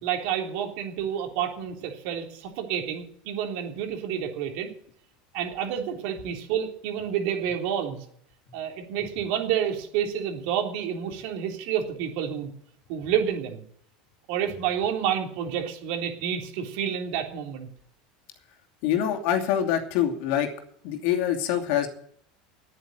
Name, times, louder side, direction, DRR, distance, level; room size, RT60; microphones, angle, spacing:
voice 1, 0.0-4.7 5.3-8.0 8.5-12.5 12.9-13.6 14.3-17.7, right 9 dB, 65° right, 3 dB, 3.4 m, -29 dB
voice 2, 18.8-20.5 20.8-21.9, left 10 dB, 65° left, 4 dB, 2.7 m, -25 dB
10.5 x 9.2 x 9.1 m, 0.63 s
supercardioid pair, 105°, 4 cm